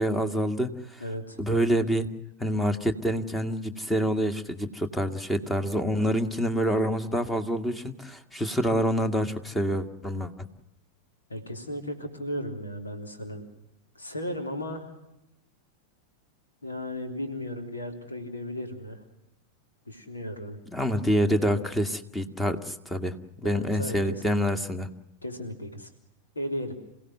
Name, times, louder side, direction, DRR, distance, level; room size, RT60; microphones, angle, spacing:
voice 1, 0.0-1.0 1.4-2.1 2.4-10.3 20.7-23.2 23.4-24.9, equal, 10° left, 10 dB, 1.9 m, -27 dB
voice 2, 1.0-1.4 11.3-13.5 14.0-14.9 16.6-19.0 19.9-20.6 23.4-24.4 25.2-25.9 26.4-26.7, left 1 dB, 75° left, 5 dB, 3.5 m, -35 dB
28.0 x 17.0 x 7.9 m, 0.88 s
figure-of-eight pair, 90°, 0 cm